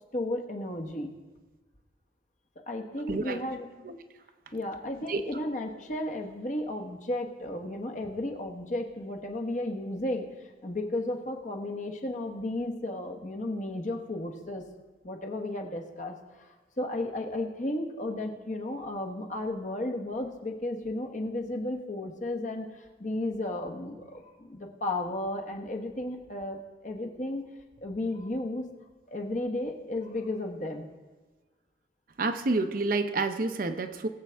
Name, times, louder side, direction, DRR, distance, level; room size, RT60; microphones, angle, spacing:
voice 1, 0.1-1.1 2.7-3.7 4.5-10.2 10.6-14.6 15.0-22.7 23.0-27.4 27.8-28.7 29.1-30.9, left 1 dB, 40° left, 3 dB, 1.1 m, -34 dB
voice 2, 3.1-3.4 3.8-4.0 5.1-5.2 32.2-34.1, right 3 dB, 50° right, 8 dB, 0.6 m, -29 dB
20.0 x 7.5 x 3.4 m, 1.3 s
head